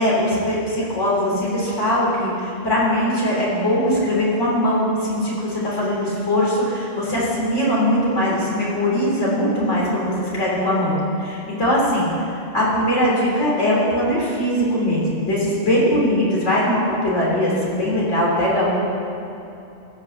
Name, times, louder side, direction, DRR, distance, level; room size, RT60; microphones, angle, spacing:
voice 1, 0.0-12.1 12.5-18.8, equal, 70° left, -6 dB, 3.6 m, -21 dB
15.5 x 5.8 x 7.0 m, 2.8 s
omnidirectional pair, 1.3 m